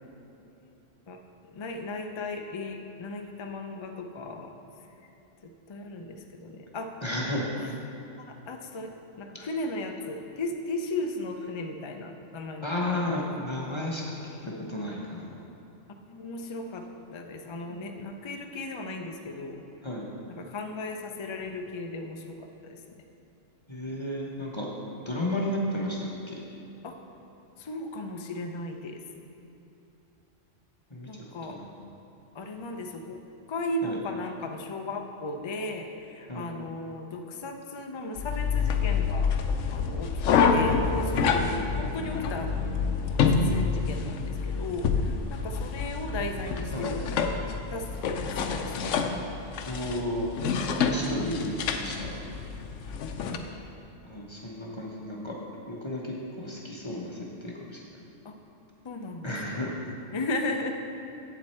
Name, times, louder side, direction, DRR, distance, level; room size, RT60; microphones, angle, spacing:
voice 1, 1.5-4.6 5.4-6.9 7.6-7.7 8.3-13.2 16.1-19.6 20.3-22.8 26.8-26.9 27.6-29.0 31.1-31.7 32.3-33.2 33.5-39.3 39.7-40.1 40.5-41.4 41.8-42.5 43.0-47.1 47.7-49.0 51.2-51.6 53.2-53.4 58.2-58.3 58.8-59.8 60.1-60.7, left 2 dB, 45° left, 4 dB, 0.3 m, -36 dB
voice 2, 7.0-7.5 12.6-15.4 17.7-17.8 19.8-20.0 23.7-24.7 25.0-26.3 30.9-31.1 31.5-31.6 33.8-34.0 36.3-36.5 41.2-41.4 46.7-46.9 49.7-50.3 50.8-52.3 54.1-55.3 55.7-57.8 59.2-59.8, left 1 dB, 25° left, -4 dB, 0.9 m, -33 dB
sound 1, 38.2-53.4, left 5 dB, 85° left, 1.0 m, -27 dB
8.1 x 7.4 x 4.3 m, 3.0 s
omnidirectional pair, 1.3 m